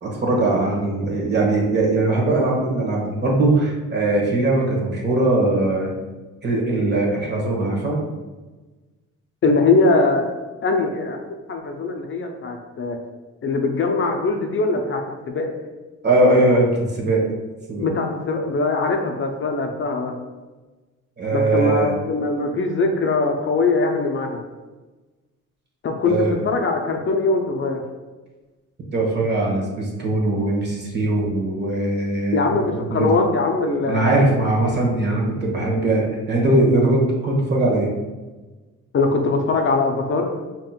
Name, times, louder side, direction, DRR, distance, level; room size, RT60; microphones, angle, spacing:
voice 1, 0.0-5.9 6.4-8.0 16.0-17.2 17.7-17.9 21.2-21.9 26.0-26.4 28.9-33.2 33.9-37.9, right 2 dB, 35° right, -2 dB, 1.2 m, -20 dB
voice 2, 9.4-10.3 10.6-11.2 11.5-13.0 13.4-15.5 17.8-20.2 21.3-24.4 25.8-27.8 32.3-34.3 38.9-40.3, left 3 dB, 40° left, 3 dB, 0.5 m, -21 dB
5.3 x 2.9 x 2.3 m, 1.2 s
cardioid pair, 90°, 30 cm